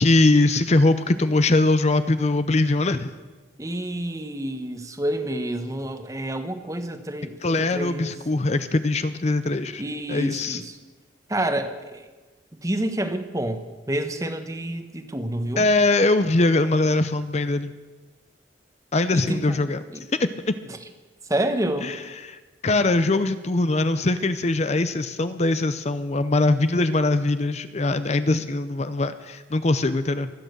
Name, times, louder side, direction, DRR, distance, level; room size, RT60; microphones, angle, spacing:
voice 1, 0.0-3.1 7.4-9.8 10.1-10.6 15.6-17.7 18.9-19.8 20.2-20.6 21.8-22.4 22.6-30.3, left 2 dB, 35° left, 11 dB, 0.6 m, -22 dB
voice 2, 3.6-8.2 9.8-10.8 11.3-12.1 12.6-15.7 19.1-19.6 19.9-20.0 21.3-21.9, right 1 dB, 20° right, 8 dB, 1.1 m, -28 dB
24.5 x 8.8 x 6.6 m, 1.3 s
head